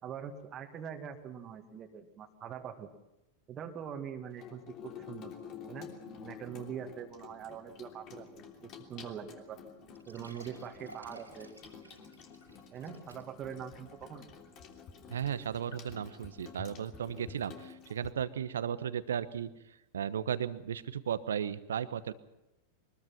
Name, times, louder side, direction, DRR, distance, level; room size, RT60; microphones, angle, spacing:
voice 1, 0.0-2.9 3.5-5.3 5.7-5.9 6.2-9.6 10.1-11.5 12.7-14.3, right 8 dB, 30° right, 5 dB, 2.2 m, -43 dB
Water tap faucet / Sink (filling or washing), 4.3-18.1, left 6 dB, 35° left, 3.1 m, -50 dB
sound 1, 9.4-9.5 9.9-13.5 14.0-14.1 14.7-14.8, right 3 dB, 85° right, 3.3 m, -55 dB
voice 2, 15.1-19.5 19.9-22.1, right 8 dB, 65° right, 15 dB, 1.0 m, -35 dB
23.5 x 21.0 x 5.9 m, 0.92 s
figure-of-eight pair, 90°, 0 cm